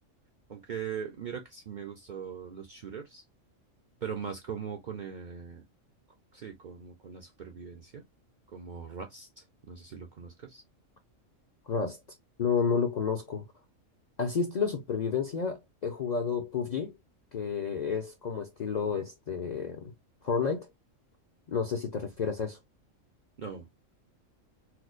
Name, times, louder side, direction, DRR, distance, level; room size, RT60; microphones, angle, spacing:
voice 1, 0.5-3.2 4.0-5.7 6.3-8.0 8.5-10.6 23.4-23.9, right 7 dB, 55° right, 0.5 m, -40 dB
voice 2, 11.7-12.0 12.4-13.5 14.2-16.9 17.3-19.9 20.2-20.7 21.5-22.6, left 6 dB, 50° left, 0.5 m, -30 dB
4.4 x 2.1 x 2.4 m
omnidirectional pair, 1.4 m